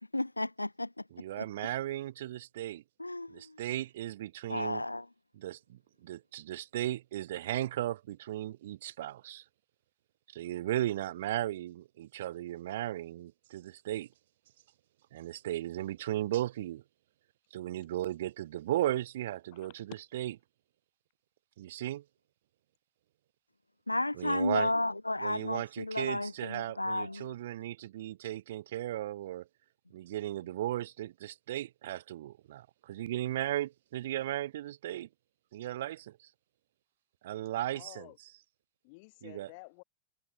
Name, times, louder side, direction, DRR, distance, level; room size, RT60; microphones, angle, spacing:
voice 1, 0.1-0.9 1.4-1.5 3.0-3.6 4.5-5.1 23.9-27.3, left 2 dB, 85° left, 0.7 m, -33 dB
voice 2, 1.1-2.8 3.3-4.8 5.3-5.6 6.0-9.4 10.3-14.1 15.1-16.8 17.5-20.3 21.6-22.0 24.2-24.7 25.2-29.5 29.9-35.1 35.5-36.2 37.2-38.1 39.2-39.5, right 13 dB, 55° right, 1.0 m, -36 dB
voice 3, 19.5-20.0 24.3-24.5 37.7-38.2 38.8-39.8, left 29 dB, 45° left, 7.4 m, -51 dB
figure-of-eight pair, 90°, 0 cm